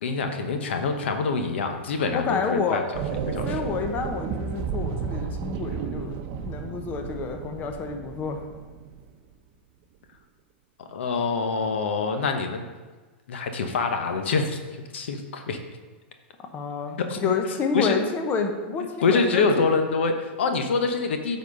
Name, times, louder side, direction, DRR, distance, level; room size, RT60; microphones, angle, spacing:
voice 1, 0.0-2.8 3.2-3.6 10.9-12.7 13.3-14.6 14.9-15.6 17.0-17.3 17.7-18.0 19.0-21.4, left 4 dB, 80° left, 6 dB, 1.0 m, -25 dB
voice 2, 2.1-2.8 3.4-8.4 16.5-19.7, left 5 dB, 30° left, 5 dB, 0.9 m, -29 dB
sound 1, 2.9-9.1, right 6 dB, 45° right, 0.8 m, -32 dB
8.4 x 4.2 x 5.4 m, 1.3 s
hypercardioid pair, 125°, 6 cm